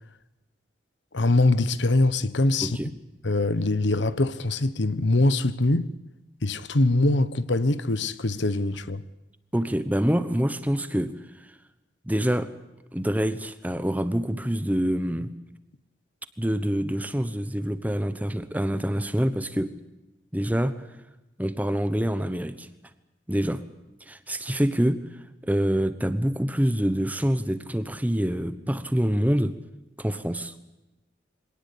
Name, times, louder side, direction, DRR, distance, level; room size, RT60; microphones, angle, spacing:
voice 1, 1.1-2.8 3.2-5.9 6.4-9.0, left 2 dB, 70° left, 1.1 m, -23 dB
voice 2, 2.6-2.9 9.5-11.1 12.0-12.5 12.9-15.3 16.4-19.7 20.3-20.8 21.4-22.7 23.3-23.6 24.1-25.0 25.4-29.5 30.0-30.5, equal, 10° right, 1.1 m, -26 dB
24.5 x 18.0 x 8.6 m
head